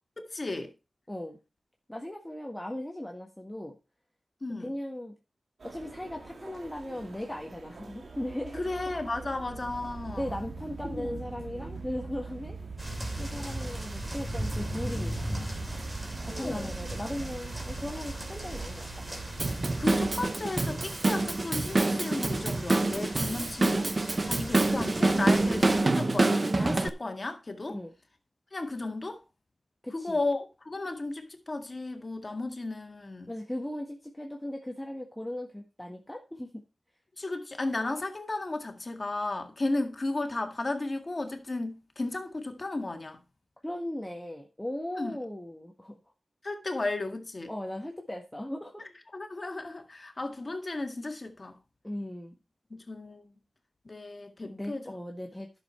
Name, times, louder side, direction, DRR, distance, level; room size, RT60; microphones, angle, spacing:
voice 1, 0.2-0.7 4.4-4.7 8.5-10.3 10.9-11.2 16.3-16.7 19.8-23.9 24.2-27.8 28.5-29.2 29.9-33.3 37.2-43.2 45.0-45.2 46.4-47.5 48.8-51.6 52.7-53.3 53.9-54.9, left 2 dB, 45° left, 1.9 m, -34 dB
voice 2, 1.9-3.7 4.6-5.1 5.6-8.6 10.1-12.6 13.2-15.2 16.2-19.0 27.7-27.9 29.8-30.2 33.3-36.5 43.6-45.9 47.5-48.9 51.8-52.4 54.4-55.6, left 1 dB, 10° left, 1.5 m, -38 dB
sound 1, 5.6-20.3, right 4 dB, 80° right, 1.9 m, -42 dB
sound 2, 12.8-25.8, right 1 dB, 30° right, 3.0 m, -38 dB
Drum kit / Drum, 19.4-26.9, right 2 dB, 45° right, 0.8 m, -26 dB
11.5 x 6.7 x 4.4 m
wide cardioid pair, 60°, 0 cm